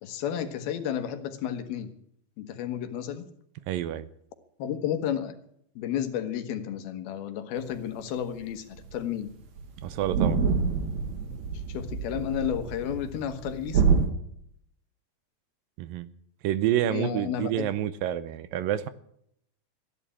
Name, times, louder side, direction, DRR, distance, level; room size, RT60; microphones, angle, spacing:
voice 1, 0.0-1.9 2.4-3.3 4.6-5.3 5.8-9.3 11.7-13.8 16.8-17.7, left 10 dB, 85° left, 8 dB, 3.2 m, -32 dB
voice 2, 3.7-4.1 9.8-10.4 15.8-16.1 16.4-18.9, right 12 dB, 75° right, 15 dB, 2.3 m, -28 dB
sound 1, 8.4-8.5 8.8-9.0 9.3-9.4 9.6-14.1, right 5 dB, 55° right, 2.7 m, -27 dB
14.0 x 11.0 x 8.5 m, 0.71 s
omnidirectional pair, 4.3 m